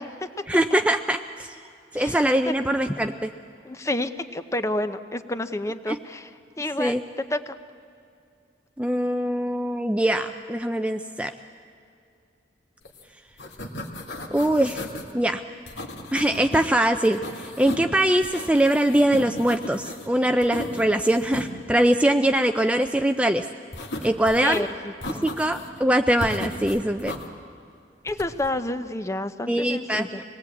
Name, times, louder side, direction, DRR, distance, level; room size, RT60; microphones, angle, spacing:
voice 1, 0.5-1.5 1.9-3.1 5.9-6.0 6.8-7.0 8.8-11.3 14.3-14.9 15.1-15.4 16.1-23.4 24.0-24.7 25.2-27.1 29.5-30.1, right 1 dB, 5° right, 6 dB, 0.5 m, -22 dB
voice 2, 1.9-2.5 2.9-3.0 3.6-6.3 6.6-7.6 24.4-25.2 28.0-30.2, left 1 dB, 15° left, 10 dB, 0.8 m, -30 dB
sound 1, 12.9-13.0 13.3-15.1 15.7-16.7 17.0-17.9 18.2-20.1 20.4-21.5 23.7-24.6 25.0-25.8 26.2-27.3 28.1-28.5, left 1 dB, 85° left, 2.3 m, -36 dB
25.5 x 19.0 x 8.5 m, 2.5 s
head